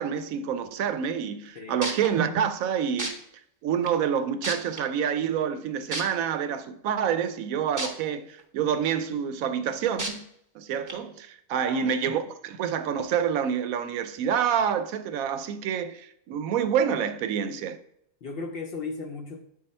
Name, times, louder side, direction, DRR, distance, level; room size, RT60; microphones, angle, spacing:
voice 1, 0.0-3.2 3.6-10.3 10.5-17.8, right 8 dB, 85° right, 1.0 m, -27 dB
sound 1, 1.4-1.5 1.8-2.1 3.0-3.1 3.9-4.0 4.4-4.8 5.9-6.0 7.8-7.9 8.4-8.5 10.0-10.1 10.9-11.0, right 1 dB, 20° right, 0.6 m, -30 dB
voice 2, 11.5-12.0 18.2-19.4, left 4 dB, 55° left, 0.7 m, -36 dB
7.1 x 4.7 x 4.2 m
omnidirectional pair, 1.4 m